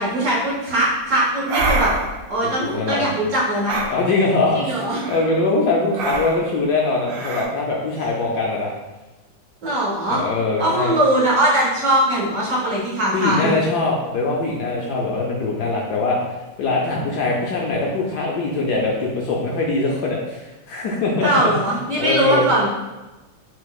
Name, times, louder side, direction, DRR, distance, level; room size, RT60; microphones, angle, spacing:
voice 1, 0.0-1.9 2.3-3.8 4.5-5.0 9.6-10.2 10.6-13.5 21.2-22.7, right 1 dB, 55° right, -5 dB, 1.3 m, -20 dB
sound 1, 1.5-2.2 3.7-3.9 4.9-5.4 6.0-6.5 7.1-7.4, right 2 dB, 75° right, 1.3 m, -24 dB
voice 2, 2.6-3.1 3.9-4.8 5.1-8.7 10.1-10.9 13.1-21.5 22.0-22.5, left 3 dB, 70° left, -2 dB, 1.0 m, -22 dB
4.5 x 4.2 x 2.3 m, 1.1 s
omnidirectional pair, 2.1 m